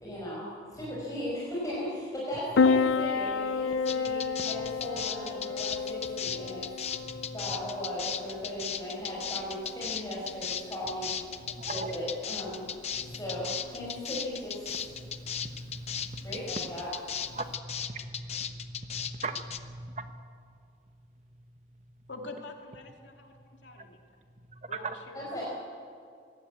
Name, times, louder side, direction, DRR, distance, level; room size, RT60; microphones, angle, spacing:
voice 1, 0.0-6.6 7.3-11.1 11.7-12.7 13.2-14.8 16.2-16.9 25.2-25.4, equal, 20° left, -7 dB, 5.2 m, -37 dB
Piano, 2.6-17.5, left 5 dB, 85° left, 0.5 m, -33 dB
sound 1, 3.9-19.6, left 8 dB, 35° left, 0.8 m, -36 dB
voice 2, 6.9-7.6 11.4-11.9 13.0-13.4 13.8-13.9 14.8-16.4 17.2-20.3 20.6-21.0 21.4-21.9 23.8-23.9 24.3-24.9, right 2 dB, 35° right, 7 dB, 1.3 m, -42 dB
voice 3, 22.1-24.0 24.7-25.4, left 2 dB, 70° left, 2 dB, 2.7 m, -45 dB
21.5 x 17.0 x 8.3 m, 2.2 s
head